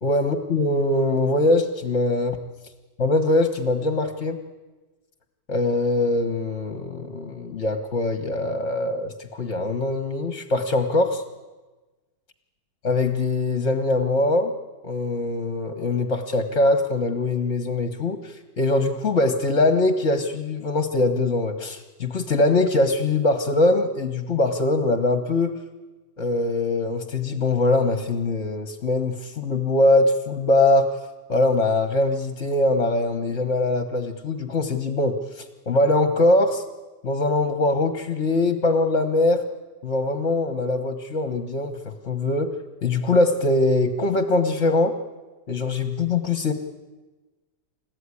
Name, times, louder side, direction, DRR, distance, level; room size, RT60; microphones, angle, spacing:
voice 1, 0.0-2.4 3.0-4.4 5.5-11.2 12.8-14.5 14.8-25.6 26.2-30.9 31.3-36.6 37.0-39.4 39.8-42.5 42.8-45.0 45.5-46.5, left 2 dB, 45° left, 7 dB, 1.6 m, -22 dB
29.0 x 15.0 x 9.8 m, 1.2 s
omnidirectional pair, 1.9 m